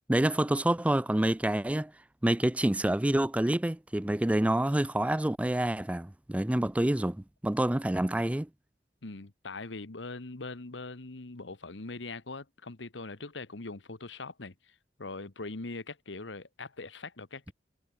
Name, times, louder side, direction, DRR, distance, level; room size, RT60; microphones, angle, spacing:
voice 1, 0.1-1.9 2.2-8.5, right 1 dB, 5° right, 0.4 m, -27 dB
voice 2, 9.0-17.5, left 3 dB, 90° left, 1.5 m, -42 dB
head